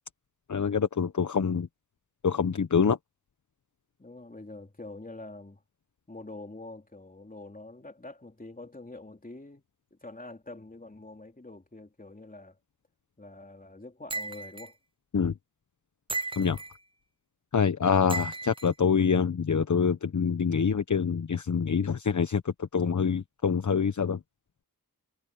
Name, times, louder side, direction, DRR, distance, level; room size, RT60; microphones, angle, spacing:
voice 1, 0.5-1.7 2.2-3.0 15.1-15.3 16.4-16.6 17.5-24.2, left 6 dB, 50° left, 1.1 m, -26 dB
voice 2, 4.0-5.6 6.1-9.6 9.9-12.6 13.2-14.8, left 2 dB, 20° left, 3.5 m, -45 dB
sound 1, 14.1-14.7 16.1-16.8 18.1-18.7, right 3 dB, 15° right, 0.6 m, -35 dB
wide cardioid pair, 75°, 37 cm